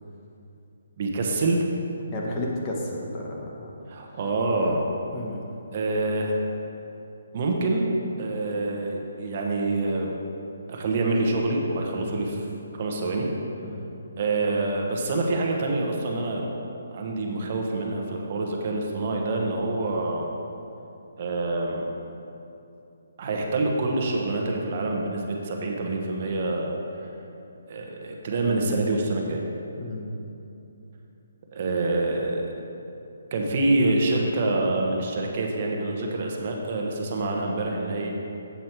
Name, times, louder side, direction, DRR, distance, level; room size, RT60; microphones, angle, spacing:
voice 1, 1.0-1.6 3.9-4.8 5.7-6.4 7.3-7.9 8.2-10.1 10.7-12.4 12.8-13.3 14.2-16.5 16.9-20.3 21.2-21.8 23.2-26.8 27.7-29.4 31.5-32.5 33.3-38.1, right 2 dB, 40° right, 0 dB, 1.1 m, -26 dB
voice 2, 2.1-3.7 5.1-5.4 12.0-12.2 13.6-13.9 29.8-30.2, left 1 dB, 20° left, -3 dB, 1.1 m, -33 dB
8.1 x 7.2 x 4.5 m, 2.8 s
hypercardioid pair, 165°, 0 cm